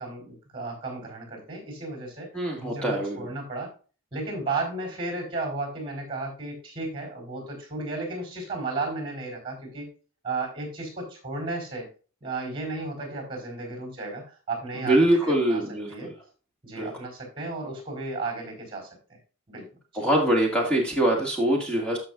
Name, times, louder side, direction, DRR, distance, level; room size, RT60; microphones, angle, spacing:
voice 1, 0.0-2.3 2.6-3.7 4.1-9.9 10.2-11.9 12.2-15.6 15.9-16.1 16.6-19.2 19.5-19.7 19.9-20.1, right 3 dB, 25° right, 1 dB, 4.3 m, -34 dB
voice 2, 2.3-3.3 14.7-16.1 16.8-16.9 20.0-22.0, right 1 dB, 5° left, -1 dB, 2.1 m, -23 dB
14.5 x 5.4 x 2.5 m, 0.36 s
head